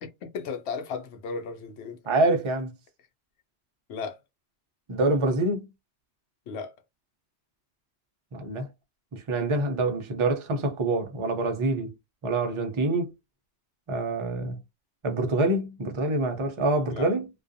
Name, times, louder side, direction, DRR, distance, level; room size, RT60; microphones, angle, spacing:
voice 1, 0.0-2.0 3.9-4.2 6.5-6.7 16.9-17.1, left 5 dB, 65° left, 0.8 m, -35 dB
voice 2, 2.1-2.7 4.9-5.7 8.3-8.7 9.1-11.9 12.2-13.1 13.9-14.6 15.0-17.3, right 2 dB, 45° right, 0.4 m, -26 dB
2.4 x 2.2 x 2.5 m
omnidirectional pair, 1.3 m